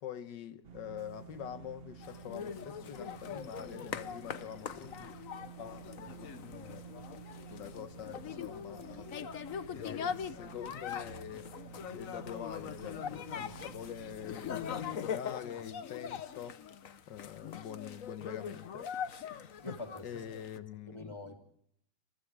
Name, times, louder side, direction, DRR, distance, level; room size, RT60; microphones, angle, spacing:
voice 1, 0.0-5.1 5.6-6.4 7.5-9.1 9.8-11.5 11.9-16.6 17.1-18.9 20.0-21.2, left 9 dB, 85° left, 1.7 m, -45 dB
sound 1, 0.6-15.0, right 8 dB, 35° right, 1.3 m, -51 dB
sound 2, 2.0-20.6, left 8 dB, 55° left, 1.2 m, -42 dB
voice 2, 19.6-20.3 20.9-21.4, left 1 dB, 15° left, 3.2 m, -45 dB
28.5 x 28.0 x 3.4 m
omnidirectional pair, 1.9 m